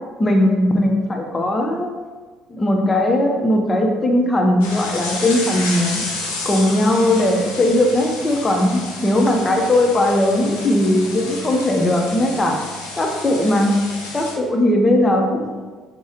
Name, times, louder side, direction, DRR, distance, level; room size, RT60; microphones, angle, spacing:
voice 1, 0.2-1.9 2.5-6.0 6.4-12.6 13.0-13.8 14.1-15.7, left 1 dB, 25° left, 2 dB, 0.7 m, -18 dB
sound 1, 4.6-14.4, left 3 dB, 85° left, 0.5 m, -31 dB
3.5 x 2.2 x 4.1 m, 1.4 s
hypercardioid pair, 55°, 0 cm